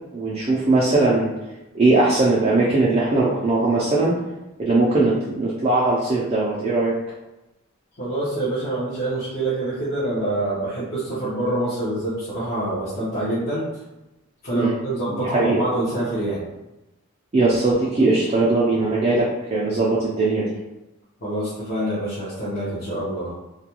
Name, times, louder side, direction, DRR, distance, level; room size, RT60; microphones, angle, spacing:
voice 1, 0.1-1.3 1.7-4.1 4.6-6.9 14.5-14.7 15.1-15.6 17.3-20.6, right 2 dB, 30° right, -6 dB, 0.4 m, -20 dB
voice 2, 8.0-13.7 14.4-16.4 21.2-23.3, right 1 dB, 45° left, -11 dB, 0.7 m, -26 dB
2.3 x 2.2 x 2.9 m, 0.98 s
head